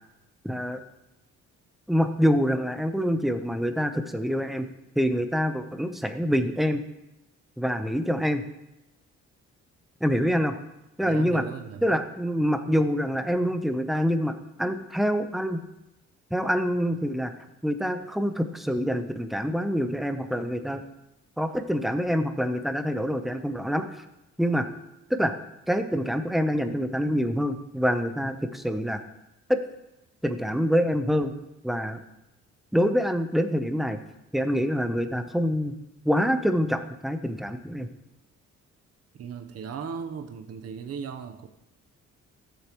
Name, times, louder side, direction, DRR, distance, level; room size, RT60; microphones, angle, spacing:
voice 1, 0.4-0.8 1.9-4.7 5.0-6.8 7.6-8.4 10.0-10.5 11.0-11.4 11.8-15.6 16.3-17.3 17.6-20.8 21.4-24.0 24.4-24.7 25.1-25.3 25.7-29.0 29.5-29.6 30.2-31.3 31.6-32.0 32.7-34.0 34.3-35.7 36.0-37.9, equal, ahead, 8 dB, 0.8 m, -26 dB
voice 2, 11.0-12.0 39.2-41.5, right 6 dB, 55° right, 5 dB, 1.0 m, -37 dB
13.0 x 7.9 x 3.1 m, 0.93 s
cardioid pair, 90°, 30 cm